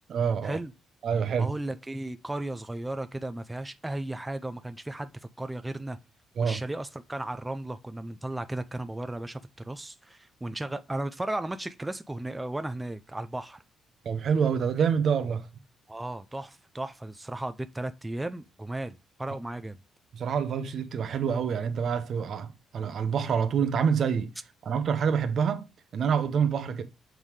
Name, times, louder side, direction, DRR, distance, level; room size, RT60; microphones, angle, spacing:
voice 1, 0.1-0.6 1.0-1.5 6.4-6.6 14.0-15.5 20.1-24.3 24.6-25.7 25.9-26.8, right 7 dB, 45° right, 0.9 m, -27 dB
voice 2, 1.4-6.0 6.4-13.6 15.9-19.8, right 1 dB, 10° right, 0.4 m, -35 dB
7.8 x 3.6 x 4.7 m
cardioid pair, 170°, 0 cm